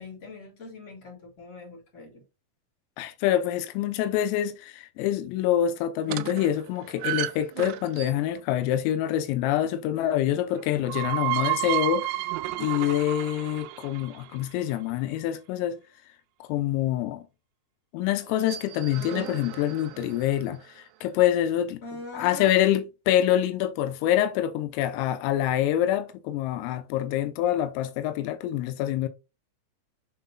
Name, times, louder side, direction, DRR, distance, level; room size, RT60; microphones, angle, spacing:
voice 1, 0.0-2.2 21.8-22.5, left 2 dB, 15° left, 3.1 m, -42 dB
voice 2, 3.0-12.3 12.6-15.8 16.4-17.2 17.9-21.8 22.1-29.1, left 11 dB, 85° left, 3.5 m, -26 dB
sound 1, 6.1-8.4 10.6-14.6 18.2-20.5, right 17 dB, 85° right, 3.0 m, -32 dB
7.7 x 5.7 x 2.7 m
omnidirectional pair, 5.9 m